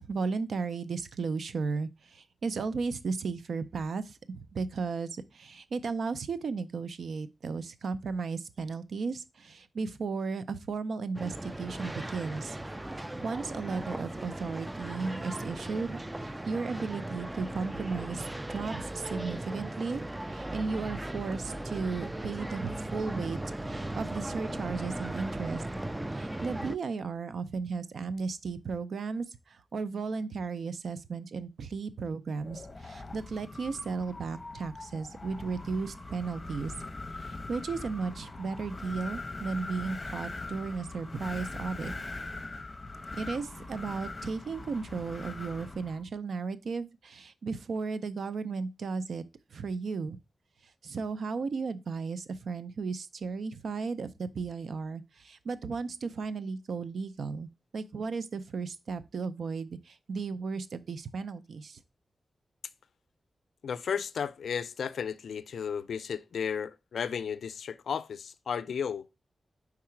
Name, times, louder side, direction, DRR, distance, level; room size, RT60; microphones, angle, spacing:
voice 1, 0.1-12.6 12.9-25.6 26.1-36.7 37.2-41.9 43.1-49.2 49.5-50.2 50.8-61.8, right 4 dB, 75° right, 0.5 m, -35 dB
sound 1, 11.1-26.8, right 1 dB, 15° right, 0.3 m, -37 dB
Wind, 32.4-46.0, left 2 dB, 30° left, 0.8 m, -41 dB
voice 2, 63.6-69.1, left 7 dB, 90° left, 0.4 m, -34 dB
4.8 x 4.7 x 4.4 m
wide cardioid pair, 105°, 0 cm